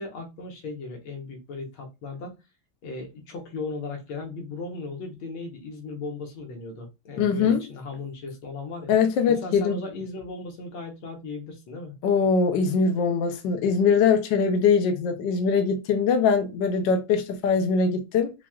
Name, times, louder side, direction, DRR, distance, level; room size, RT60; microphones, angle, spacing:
voice 1, 0.0-2.4 2.8-8.9 9.3-12.0, left 3 dB, 85° left, 1.9 m, -36 dB
voice 2, 7.2-7.6 8.9-9.8 12.0-18.3, left 5 dB, 70° left, 1.3 m, -22 dB
5.9 x 2.3 x 2.4 m
omnidirectional pair, 2.2 m